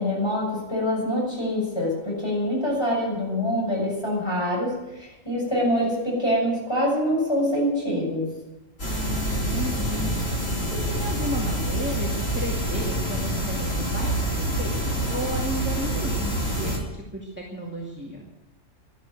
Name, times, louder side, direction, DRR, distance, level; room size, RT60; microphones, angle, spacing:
voice 1, 0.0-8.3, equal, 20° left, -3 dB, 7.2 m, -25 dB
sound 1, 8.8-16.8, right 1 dB, 55° left, 3.0 m, -26 dB
voice 2, 8.8-10.1 10.7-18.3, right 1 dB, 10° right, -2 dB, 2.3 m, -34 dB
12.5 x 12.0 x 9.3 m, 1.0 s
omnidirectional pair, 1.3 m